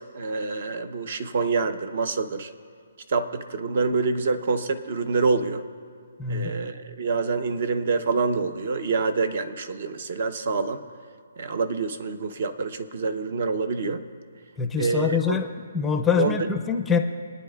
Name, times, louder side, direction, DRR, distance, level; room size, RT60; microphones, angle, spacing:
voice 1, 0.0-2.5 3.1-5.6 6.3-10.8 11.4-14.0 14.8-15.4 16.2-16.3, right 4 dB, 45° right, 11 dB, 0.7 m, -26 dB
voice 2, 6.2-6.5 14.6-15.5 15.7-17.0, left 6 dB, 5° left, 5 dB, 0.5 m, -24 dB
28.0 x 9.4 x 2.3 m, 2.2 s
hypercardioid pair, 165°, 0 cm